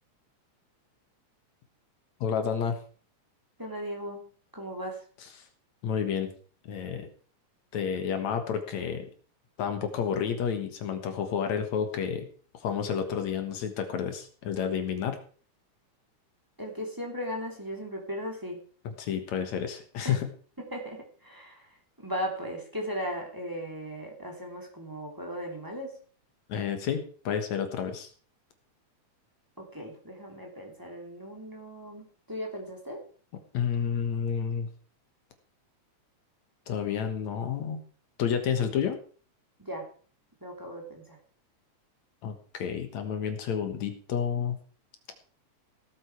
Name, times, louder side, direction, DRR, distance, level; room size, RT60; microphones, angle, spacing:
voice 1, 2.2-2.8 5.8-6.3 6.6-7.1 7.7-9.1 9.6-12.3 12.6-15.2 18.8-20.3 26.5-28.1 33.5-34.7 36.7-37.8 38.2-39.0 42.2-44.6, left 7 dB, 70° left, 7 dB, 2.7 m, -30 dB
voice 2, 3.6-5.0 16.6-18.6 20.0-20.1 20.6-21.7 22.0-26.0 29.6-33.0 39.6-39.9 40.4-41.2, equal, 5° right, 0 dB, 2.8 m, -37 dB
17.5 x 8.3 x 4.7 m, 0.43 s
omnidirectional pair, 3.5 m